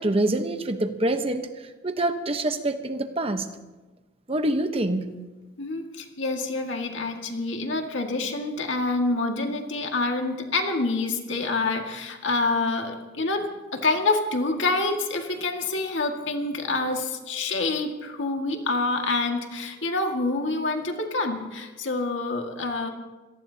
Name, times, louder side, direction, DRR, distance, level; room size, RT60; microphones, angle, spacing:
voice 1, 0.0-1.5 1.8-3.5 4.3-5.1, right 1 dB, 30° right, 7 dB, 1.0 m, -25 dB
voice 2, 5.6-22.9, left 3 dB, 70° left, 2 dB, 2.0 m, -27 dB
26.0 x 18.0 x 2.9 m, 1.2 s
head